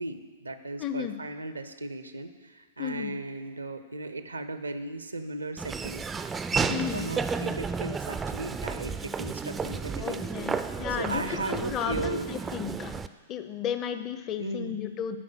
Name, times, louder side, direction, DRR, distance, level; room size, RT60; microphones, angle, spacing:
voice 1, 0.0-6.0 6.5-10.5 11.0-12.3 14.4-14.8, right 2 dB, 85° right, 10 dB, 0.6 m, -36 dB
voice 2, 0.8-1.1 2.8-3.1 6.7-7.1 10.0-12.2 12.5-12.9 13.3-15.2, left 9 dB, 30° left, 10 dB, 0.6 m, -33 dB
Laughter / Walk footsteps, 5.6-13.1, right 5 dB, 15° right, 0.3 m, -32 dB
8.5 x 4.9 x 7.2 m, 1.5 s
figure-of-eight pair, 105°, 0 cm